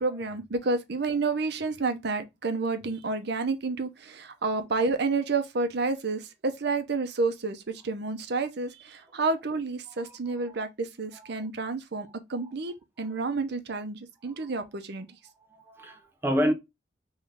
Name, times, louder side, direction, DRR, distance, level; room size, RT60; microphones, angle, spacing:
voice 1, 0.0-15.1, right 3 dB, 65° right, 0.7 m, -30 dB
voice 2, 10.0-10.5 15.5-16.5, equal, 15° right, 0.4 m, -29 dB
3.6 x 3.1 x 3.5 m
head